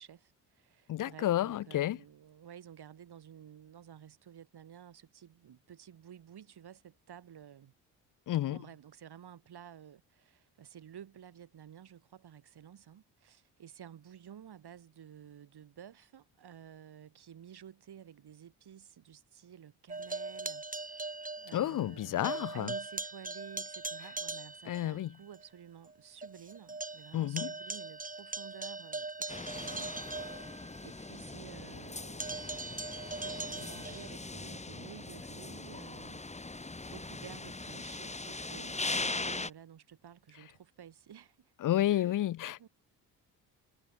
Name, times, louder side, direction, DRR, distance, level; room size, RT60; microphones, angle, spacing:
voice 1, 0.0-7.7 8.5-41.5 41.9-42.2 42.6-42.7, right 9 dB, 55° right, 6.8 m, -53 dB
voice 2, 0.9-2.0 8.3-8.6 21.5-22.7 24.7-25.1 27.1-27.5 41.6-42.7, left 13 dB, 45° left, 0.6 m, -31 dB
sound 1, 19.9-22.0 22.2-24.9 25.3-25.4 25.9-26.0 26.2-31.0 32.2-34.1, right 3 dB, 20° right, 2.6 m, -40 dB
sound 2, 29.3-39.5, left 3 dB, 15° left, 1.8 m, -40 dB
hypercardioid pair, 50°, 46 cm